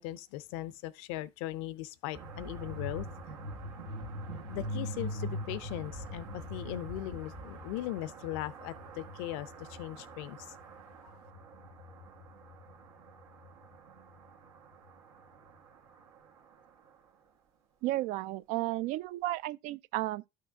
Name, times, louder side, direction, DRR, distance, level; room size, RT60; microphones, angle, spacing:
voice 1, 0.0-3.1 4.5-10.6 11.0-11.1, left 14 dB, 85° left, 0.5 m, -39 dB
sound 1, 2.1-16.0, equal, 90° right, 1.7 m, -43 dB
voice 2, 17.8-20.3, right 17 dB, 75° right, 0.4 m, -33 dB
12.0 x 6.5 x 2.3 m
supercardioid pair, 80°, 13 cm